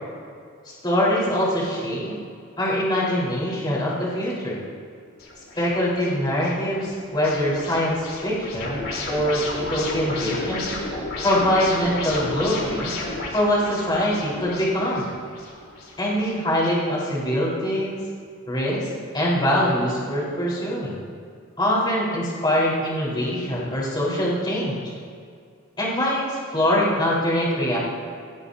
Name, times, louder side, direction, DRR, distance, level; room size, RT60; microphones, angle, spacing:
voice 1, 0.6-2.1 2.6-4.6 5.6-8.8 9.1-10.7 11.2-13.0 13.3-15.1 16.0-18.0 18.5-21.0 21.6-24.9 25.8-27.8, equal, 20° left, -6 dB, 4.6 m, -23 dB
sound 1, 5.2-16.7, left 2 dB, 75° left, 3.9 m, -33 dB
21.0 x 17.0 x 2.9 m, 2.2 s
head